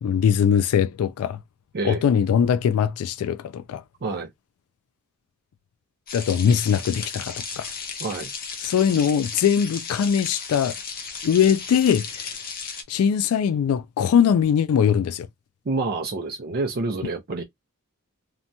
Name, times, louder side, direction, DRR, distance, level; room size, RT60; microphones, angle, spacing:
voice 1, 0.0-1.4 1.8-3.8 6.1-7.7 8.6-10.8 11.2-12.3 12.9-15.3, left 8 dB, 85° left, 0.3 m, -21 dB
sound 1, 6.1-12.8, left 5 dB, 45° left, 0.7 m, -35 dB
voice 2, 8.0-8.3 15.7-17.4, right 3 dB, 45° right, 0.5 m, -28 dB
2.8 x 2.2 x 2.5 m
head